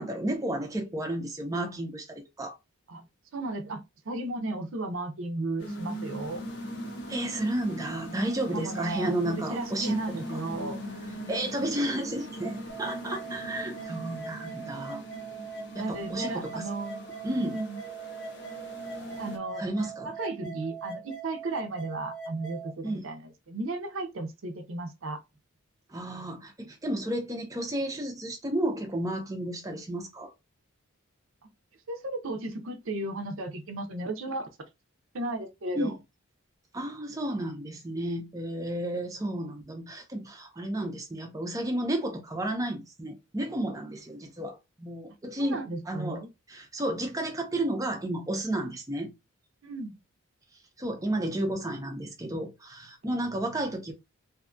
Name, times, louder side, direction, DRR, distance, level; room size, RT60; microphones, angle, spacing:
voice 1, 0.0-2.6 7.1-10.0 10.3-10.4 11.3-15.0 15.7-16.7 17.2-17.6 19.6-20.1 20.4-20.6 22.8-23.1 25.9-30.3 35.7-36.0 36.7-46.2 46.5-49.1 50.8-53.9, right 1 dB, 15° right, 0.4 m, -32 dB
voice 2, 3.3-6.4 8.5-10.8 15.8-17.8 19.2-19.6 20.0-25.2 31.9-34.5 35.1-36.0 45.4-46.3 49.6-49.9, right 2 dB, 65° right, 0.5 m, -35 dB
sound 1, 5.6-19.4, right 1 dB, 50° left, 0.6 m, -40 dB
sound 2, 12.7-22.7, right 5 dB, 75° left, 1.0 m, -41 dB
2.6 x 2.2 x 2.5 m
head